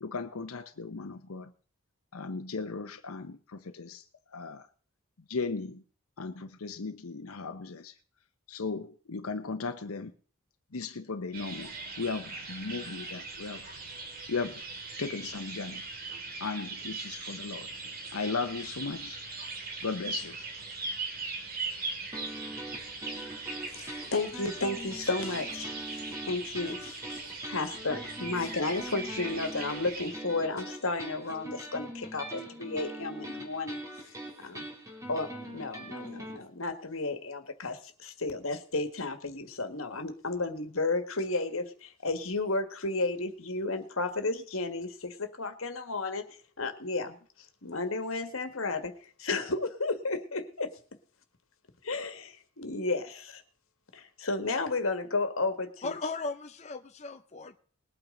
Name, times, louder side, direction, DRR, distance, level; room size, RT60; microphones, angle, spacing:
voice 1, 0.0-1.5 2.1-4.0 4.3-4.7 5.3-5.8 6.2-7.9 8.5-10.1 10.7-13.8 14.3-14.6 15.0-15.8 16.4-17.7 18.1-19.2 19.8-20.4, left 4 dB, 90° left, 0.8 m, -36 dB
sound 1, 11.3-30.1, right 3 dB, 45° right, 2.2 m, -40 dB
sound 2, 22.1-36.4, right 1 dB, 15° right, 3.0 m, -42 dB
voice 2, 23.7-25.7 26.3-33.8 34.4-34.6 35.1-46.2 46.6-47.2 47.6-48.9 49.2-50.7 51.8-53.4 53.9-55.9, left 3 dB, 70° left, 1.8 m, -33 dB
voice 3, 55.8-57.6, left 3 dB, 30° left, 0.7 m, -37 dB
20.0 x 8.9 x 3.9 m
head